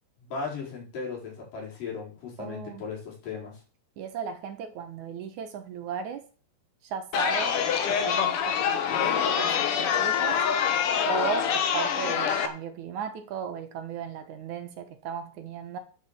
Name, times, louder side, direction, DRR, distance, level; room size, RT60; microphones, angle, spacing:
voice 1, 0.2-3.6, left 5 dB, 75° left, -3 dB, 6.0 m, -37 dB
voice 2, 2.4-2.8 4.0-6.2 6.8-10.5 11.1-15.8, right 7 dB, 70° right, 8 dB, 2.4 m, -36 dB
Chatter, 7.1-12.5, left 8 dB, 60° left, 1.6 m, -25 dB
9.4 x 7.4 x 7.3 m, 0.38 s
omnidirectional pair, 3.9 m